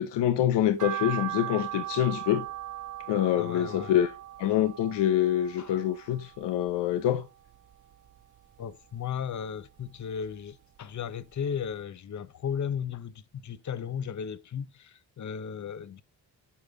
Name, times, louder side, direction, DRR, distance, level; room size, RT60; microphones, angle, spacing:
voice 1, 0.0-2.5 3.1-4.1 4.4-7.3, left 11 dB, 80° left, 0.8 m, -26 dB
sound 1, 0.8-7.1 7.5-8.6 9.0-10.4 10.8-10.9 11.3-11.4 11.7-11.8, right 13 dB, 45° right, 0.8 m, -39 dB
voice 2, 3.4-3.9 5.6-5.8 8.6-16.0, left 7 dB, 45° left, 0.8 m, -35 dB
8.5 x 5.4 x 3.8 m
cardioid pair, 95°, 42 cm